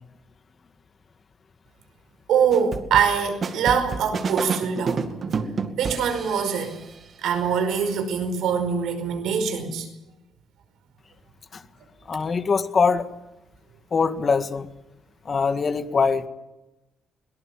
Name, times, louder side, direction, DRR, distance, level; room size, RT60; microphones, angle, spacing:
voice 1, 2.3-5.1 5.8-6.8 7.2-9.9, right 7 dB, 80° right, 8 dB, 5.2 m, -23 dB
sound 1, 2.5-6.8, right 5 dB, 50° right, 2.2 m, -29 dB
voice 2, 12.1-13.1 13.9-14.7 15.3-16.3, left 5 dB, 40° left, 9 dB, 1.8 m, -22 dB
22.5 x 18.5 x 7.4 m, 0.97 s
cardioid pair, 90°, 0 cm